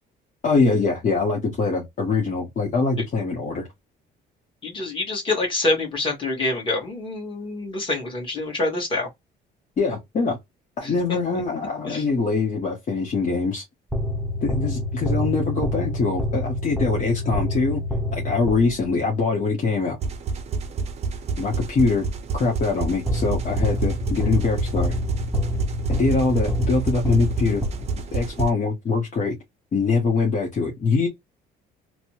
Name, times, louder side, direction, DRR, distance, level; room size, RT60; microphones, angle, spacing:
voice 1, 0.4-3.6 9.8-10.4 10.8-13.6 14.4-17.8 18.1-20.0 21.4-22.0 22.3-25.0 25.9-27.7 28.1-29.3 29.7-31.1, left 4 dB, 45° left, 1.2 m, -23 dB
voice 2, 4.6-9.1 10.8-11.2 11.9-12.0, left 2 dB, 25° left, 1.6 m, -26 dB
sound 1, 13.9-19.0 23.1-28.3, left 1 dB, ahead, 0.7 m, -27 dB
sound 2, 20.0-28.5, right 4 dB, 35° right, 0.5 m, -29 dB
3.2 x 2.1 x 2.9 m
cardioid pair, 145°, 18 cm